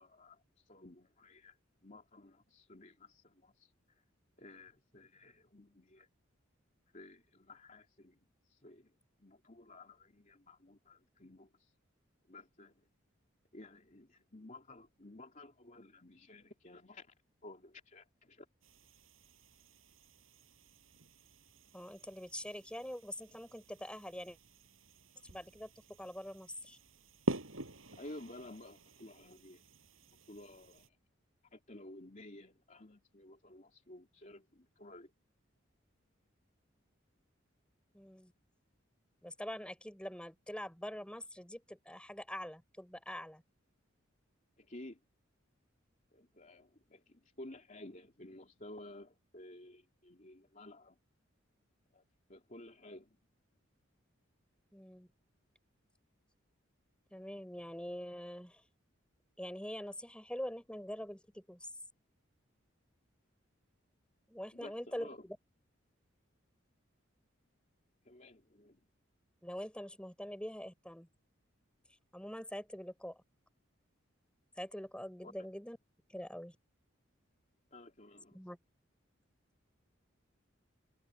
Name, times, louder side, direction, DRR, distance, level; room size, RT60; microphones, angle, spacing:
voice 1, 0.0-4.0 4.4-6.1 6.9-8.2 8.4-11.7 12.3-12.9 13.5-17.1 17.4-18.5 28.0-29.6 30.3-31.0 31.5-35.1 44.6-45.0 46.1-51.0 51.9-52.0 52.3-53.2 64.5-65.2 68.0-68.9 75.2-75.3 77.7-78.4, left 1 dB, 40° left, 3.1 m, -54 dB
sound 1, 18.6-30.9, right 1 dB, 85° right, 7.7 m, -46 dB
voice 2, 21.7-24.4 25.2-26.8 37.9-38.3 39.2-43.4 54.7-55.1 57.1-58.6 59.4-61.7 64.3-65.1 69.4-71.1 72.1-73.2 74.6-75.8 76.1-76.6 78.3-78.6, equal, 5° left, 7.0 m, -44 dB
head